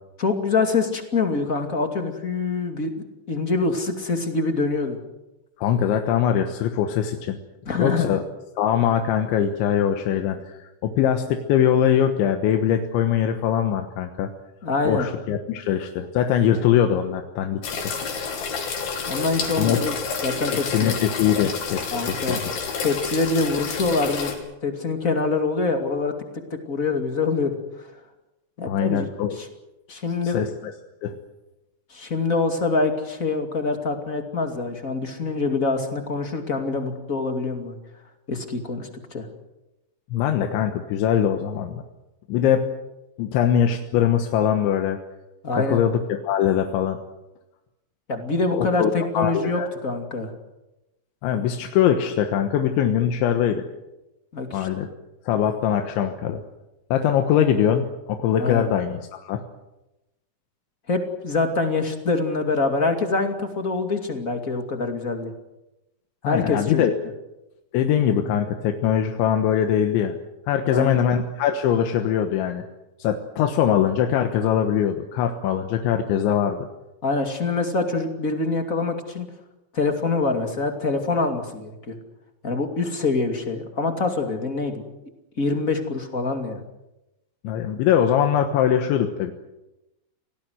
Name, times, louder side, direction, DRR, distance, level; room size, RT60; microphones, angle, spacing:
voice 1, 0.2-5.0 7.6-8.1 14.6-15.1 19.1-19.9 20.2-21.0 21.9-22.4 22.8-24.3 24.6-26.1 26.5-27.9 28.6-29.5 29.9-30.4 31.9-37.8 38.3-39.3 45.4-45.8 48.1-50.3 54.3-54.7 58.4-58.7 60.9-65.3 66.2-66.8 70.7-71.0 77.0-79.3 79.7-82.0 82.4-84.8 85.4-86.6, left 3 dB, 30° left, 5 dB, 1.7 m, -25 dB
voice 2, 5.6-7.4 7.8-8.2 8.6-14.3 14.9-17.6 19.6-19.8 20.5-22.4 28.7-29.4 30.2-30.5 31.0-31.1 40.1-41.8 42.3-42.7 43.2-45.0 45.5-47.0 48.5-49.7 51.2-53.6 54.5-54.9 55.3-56.4 56.9-59.4 66.2-66.9 67.7-70.2 70.5-72.6 73.0-76.7 87.4-89.3, left 9 dB, 80° left, 5 dB, 3.6 m, -22 dB
sound 1, 17.6-24.3, left 5 dB, 55° left, 4.7 m, -29 dB
27.5 x 18.5 x 7.9 m, 0.96 s
omnidirectional pair, 5.3 m